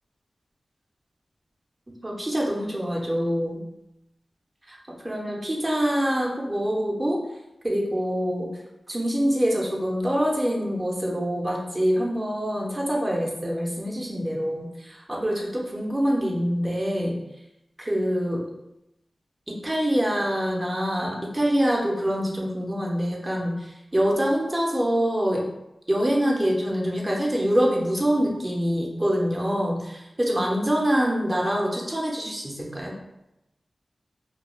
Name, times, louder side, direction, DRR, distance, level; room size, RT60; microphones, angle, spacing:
voice 1, 2.0-3.6 4.7-4.8 5.0-7.2 7.6-8.5 8.9-17.2 17.8-18.5 19.5-25.4 25.9-32.9, equal, 25° right, -2 dB, 0.6 m, -25 dB
2.3 x 2.2 x 3.0 m, 0.88 s
wide cardioid pair, 60°, 0 cm